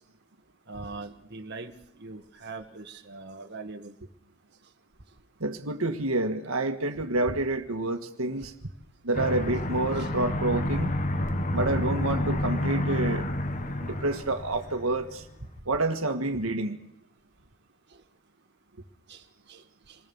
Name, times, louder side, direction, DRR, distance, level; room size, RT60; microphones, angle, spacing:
voice 1, 0.7-1.7 2.0-3.9 10.0-10.1 19.1-19.2 19.5-19.6, right 3 dB, 50° right, 4 dB, 1.7 m, -41 dB
voice 2, 5.4-8.5 9.0-10.9 11.5-13.3 13.8-15.2 15.7-16.8, right 2 dB, 75° right, 6 dB, 1.8 m, -28 dB
Aircraft, 9.1-15.2, left 1 dB, 35° left, 1.5 m, -29 dB
28.0 x 20.0 x 7.2 m, 0.80 s
head